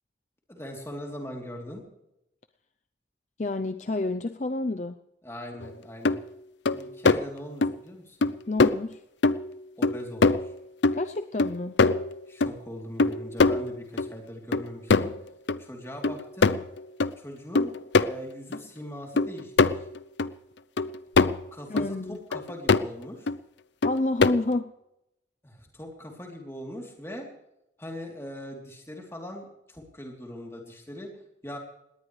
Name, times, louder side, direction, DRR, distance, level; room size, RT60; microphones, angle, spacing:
voice 1, 0.5-1.8 5.2-6.2 6.7-8.3 9.8-10.5 12.3-15.1 15.6-16.5 17.2-17.7 18.0-19.9 21.5-23.3 25.4-27.3 27.8-31.1 31.4-31.6, equal, 15° left, 1 dB, 3.2 m, -40 dB
voice 2, 3.4-5.0 8.5-9.0 10.9-11.7 21.7-22.2 23.8-24.7, left 2 dB, 40° left, 9 dB, 0.5 m, -29 dB
sound 1, 5.6-5.7 6.0-6.2 6.6-7.2 7.6-7.7 8.2-8.3 8.6-8.7 9.2-9.5 9.8-10.6 10.8-12.5 13.0-14.1 14.5-15.2 15.5-15.6 16.0-17.1 17.5-18.1 18.5-18.6 19.2-20.3 20.8-21.5 21.8-21.9 22.3-22.9 23.3-23.4 23.8-24.5, left 3 dB, 80° left, 0.6 m, -23 dB
20.0 x 18.5 x 3.3 m, 0.83 s
head